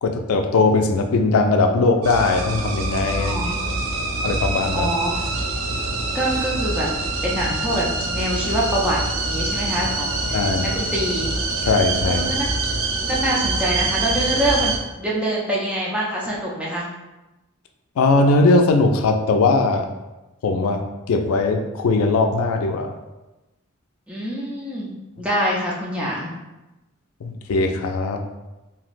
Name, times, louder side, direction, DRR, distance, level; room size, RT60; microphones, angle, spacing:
voice 1, 0.0-3.5 4.2-4.9 10.3-10.7 11.7-12.3 18.0-19.9 20.4-22.9 27.2-28.2, left 3 dB, 85° left, 5 dB, 0.4 m, -19 dB
sound 1, 2.0-14.8, right 2 dB, 75° right, 0.4 m, -25 dB
voice 2, 3.2-3.8 4.7-5.1 6.1-6.9 7.2-9.0 9.3-11.3 12.1-12.5 13.1-16.8 24.1-24.9 25.2-26.3, right 1 dB, 5° right, -5 dB, 0.5 m, -25 dB
3.1 x 2.7 x 2.5 m, 1.0 s
head